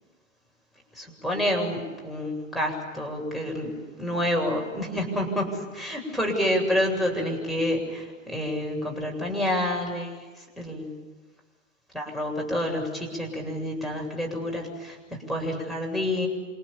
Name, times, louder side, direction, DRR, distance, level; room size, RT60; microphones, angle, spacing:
voice 1, 1.0-10.1 10.6-10.9 11.9-16.3, left 1 dB, ahead, -1 dB, 7.8 m, -28 dB
28.0 x 28.0 x 7.4 m, 1.3 s
hypercardioid pair, 110°, 39 cm